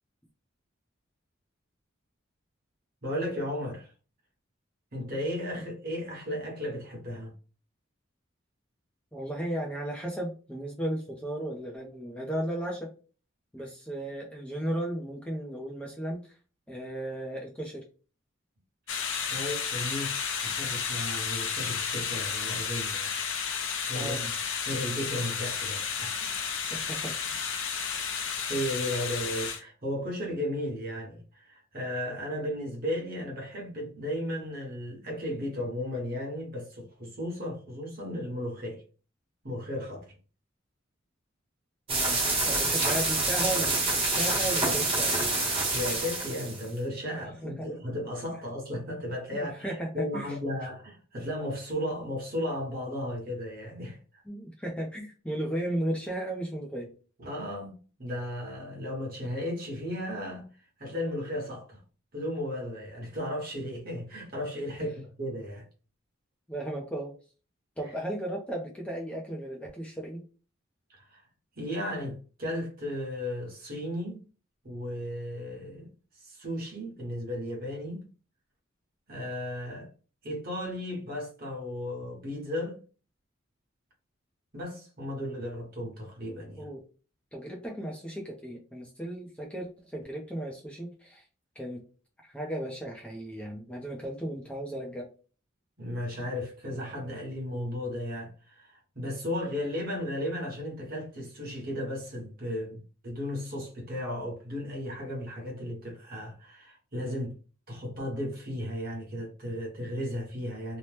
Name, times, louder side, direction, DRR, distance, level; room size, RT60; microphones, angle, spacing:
voice 1, 3.0-3.9 4.9-7.3 19.3-20.2 20.4-23.1 23.9-24.3 24.7-26.3 28.2-38.8 39.4-40.1 45.7-54.2 57.2-60.5 60.8-61.8 62.1-65.6 70.9-71.2 71.6-74.2 74.6-75.9 76.2-78.0 79.1-79.9 80.2-82.8 84.5-86.7 95.8-107.3 107.7-110.8, left 1 dB, 45° right, 1.1 m, -35 dB
voice 2, 9.1-12.9 13.5-16.2 16.7-17.8 23.9-24.2 26.7-27.5 41.9-45.2 47.1-47.7 49.3-50.3 54.3-56.9 66.5-67.1 67.8-70.2 86.6-86.8 87.3-91.2 91.6-91.8 92.2-95.1, right 1 dB, 5° left, 0.5 m, -35 dB
sound 1, 18.9-29.6, left 6 dB, 70° left, 0.6 m, -32 dB
sound 2, 41.9-46.6, right 2 dB, 25° right, 0.8 m, -27 dB
2.8 x 2.1 x 3.2 m
head